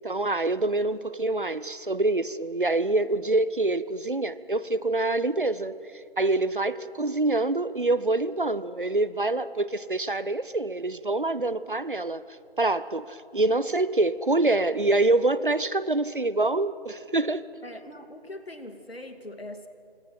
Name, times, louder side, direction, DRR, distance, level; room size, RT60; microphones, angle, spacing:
voice 1, 0.0-5.8 6.2-12.2 12.6-17.4, right 2 dB, 55° right, 16 dB, 0.8 m, -25 dB
voice 2, 17.6-19.7, left 1 dB, 70° left, 7 dB, 2.5 m, -41 dB
27.5 x 25.0 x 5.9 m, 2.5 s
figure-of-eight pair, 175°, 32 cm